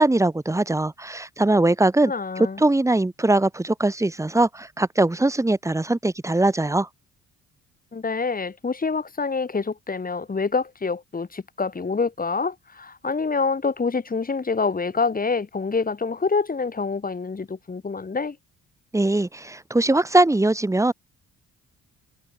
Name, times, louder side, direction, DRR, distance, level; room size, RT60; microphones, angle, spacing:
voice 1, 0.0-6.9 18.9-20.9, right 2 dB, 10° right, 1.1 m, -21 dB
voice 2, 2.1-2.6 7.9-18.4, left 4 dB, 30° left, 3.8 m, -26 dB
cardioid pair, 90°, 30 cm